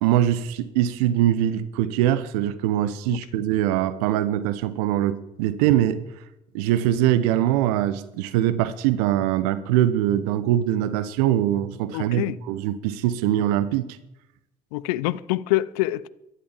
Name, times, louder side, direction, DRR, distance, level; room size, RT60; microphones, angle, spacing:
voice 1, 0.0-6.0 6.5-13.9, right 12 dB, 70° right, 1.1 m, -22 dB
voice 2, 11.9-12.4 14.7-16.1, left 17 dB, 70° left, 0.7 m, -25 dB
14.5 x 12.5 x 7.3 m
figure-of-eight pair, 55°, 20 cm